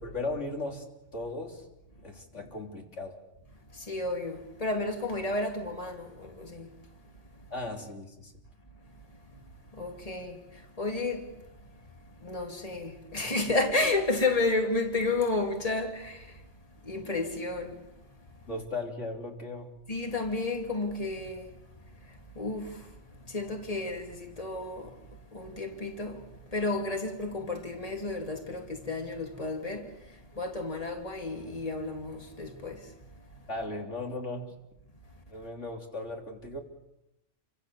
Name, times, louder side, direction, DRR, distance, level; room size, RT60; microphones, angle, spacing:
voice 1, 0.0-0.9 1.1-1.7 2.0-3.2 7.5-8.3 18.5-19.7 33.5-34.5 35.3-36.6, left 2 dB, 85° left, 3.6 m, -37 dB
voice 2, 3.7-6.7 9.3-9.4 9.7-11.3 12.2-16.4 16.8-17.8 19.9-21.5 22.3-22.9 23.2-25.0 25.3-26.2 26.5-29.9 30.4-32.9, left 2 dB, 30° left, 2.8 m, -32 dB
29.5 x 24.5 x 7.0 m
omnidirectional pair, 1.2 m